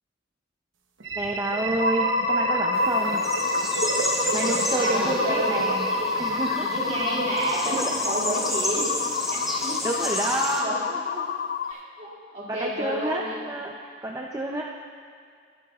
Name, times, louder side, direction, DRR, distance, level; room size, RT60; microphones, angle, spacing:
sound 1, 1.0-7.8, right 1 dB, 80° right, 1.0 m, -28 dB
voice 1, 1.2-3.2 4.3-5.9 6.2-6.7 7.7-7.9 9.8-10.8 12.5-14.6, right 1 dB, 15° right, -1 dB, 0.5 m, -29 dB
sound 2, 1.8-11.7, left 7 dB, 50° left, 0.3 m, -30 dB
sound 3, 2.7-10.6, equal, ahead, 1.2 m, -32 dB
voice 2, 4.7-5.6 6.7-8.9 9.6-9.8 10.6-11.4 11.7-12.1 12.3-13.4, right 1 dB, 40° right, -6 dB, 2.4 m, -30 dB
18.5 x 8.9 x 2.4 m, 2.2 s
head